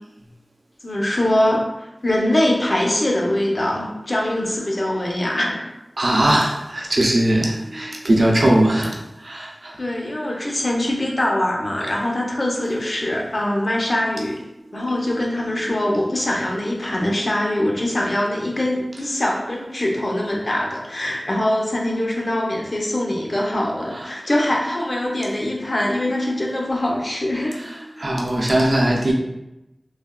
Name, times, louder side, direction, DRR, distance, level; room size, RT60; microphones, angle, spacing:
voice 1, 0.8-1.6 2.0-5.7 9.8-14.4 14.7-27.6 28.0-28.1, left 1 dB, 60° left, -1 dB, 0.6 m, -23 dB
voice 2, 6.0-9.8 14.8-14.9 23.9-24.1 28.0-29.1, right 1 dB, 75° right, -2 dB, 0.5 m, -19 dB
3.2 x 2.3 x 2.2 m, 0.94 s
wide cardioid pair, 45°, 0 cm